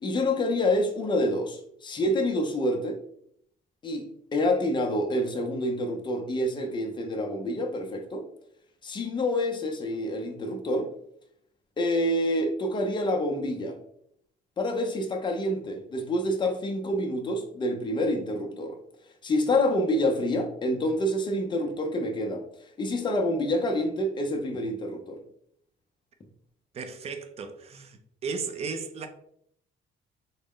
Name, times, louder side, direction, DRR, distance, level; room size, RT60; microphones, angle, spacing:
voice 1, 0.0-3.0 3.8-8.2 8.8-10.9 11.8-13.8 14.6-18.8 19.2-22.4 22.8-25.2, left 1 dB, 25° left, 0.5 m, -27 dB
voice 2, 26.7-29.1, right 5 dB, 35° right, 0.4 m, -35 dB
3.9 x 2.1 x 3.6 m
cardioid pair, 155°, 20 cm